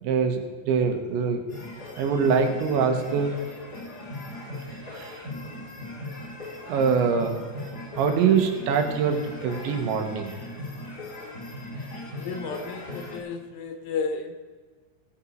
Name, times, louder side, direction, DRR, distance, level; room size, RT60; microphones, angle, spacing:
voice 1, 0.0-1.4 2.0-3.4 4.9-5.3 6.6-7.4 8.0-10.3, right 6 dB, 80° right, 4 dB, 3.5 m, -24 dB
sound 1, 1.5-13.2, left 1 dB, 40° left, 1.3 m, -38 dB
voice 2, 12.1-14.3, left 5 dB, 75° left, 7 dB, 2.8 m, -32 dB
17.5 x 7.9 x 4.5 m, 1.5 s
omnidirectional pair, 5.4 m